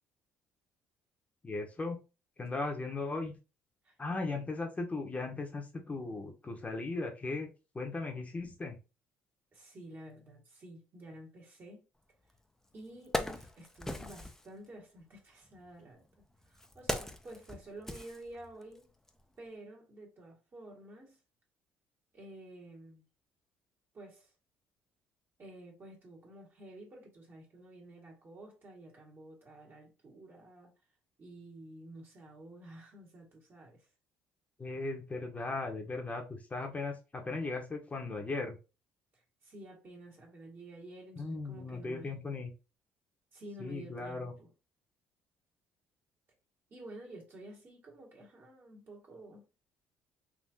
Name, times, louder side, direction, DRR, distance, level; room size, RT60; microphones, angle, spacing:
voice 1, 1.4-2.0 2.4-3.3 4.0-7.5 7.7-8.8 34.6-38.6 41.1-42.5 43.6-44.3, left 3 dB, 25° left, 0.9 m, -37 dB
voice 2, 3.8-4.4 9.5-11.9 12.7-16.0 16.4-18.9 19.4-21.2 22.1-23.0 23.9-24.3 25.4-30.7 31.2-33.9 39.1-42.1 43.3-44.5 46.7-49.5, right 1 dB, 40° right, 1.8 m, -51 dB
Wood, 12.3-12.4 12.8-14.5 15.4-18.8 19.1-19.2, left 1 dB, 5° left, 0.6 m, -39 dB
3.6 x 2.7 x 2.7 m
supercardioid pair, 70°, 5 cm